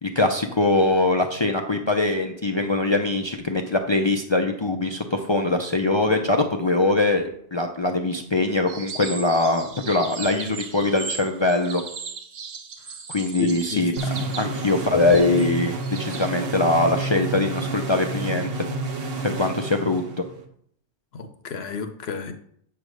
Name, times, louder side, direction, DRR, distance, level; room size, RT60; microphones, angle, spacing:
voice 1, 0.0-11.8 13.1-13.9 14.4-15.7 16.0-18.5 19.2-20.0, left 2 dB, 40° left, 4 dB, 0.4 m, -22 dB
sound 1, 8.7-16.3, right 5 dB, 90° right, 1.3 m, -37 dB
voice 2, 13.4-14.3 21.1-22.3, left 6 dB, 65° left, 8 dB, 1.0 m, -32 dB
sound 2, 14.0-20.5, right 3 dB, 60° right, 1.2 m, -30 dB
8.6 x 3.4 x 6.3 m, 0.67 s
omnidirectional pair, 1.2 m